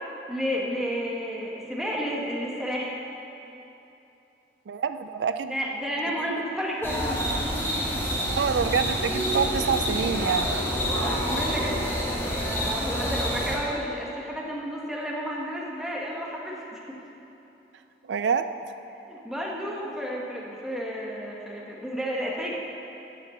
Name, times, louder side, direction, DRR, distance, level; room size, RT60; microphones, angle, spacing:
voice 1, 0.3-3.1 5.5-8.2 10.9-17.0 19.1-22.6, equal, ahead, -4 dB, 1.3 m, -32 dB
voice 2, 4.7-5.5 8.4-10.5 18.1-18.7, right 6 dB, 90° right, 10 dB, 0.4 m, -26 dB
sound 1, 6.8-13.6, equal, 15° left, 1.7 m, -27 dB
12.0 x 5.6 x 7.7 m, 3.0 s
head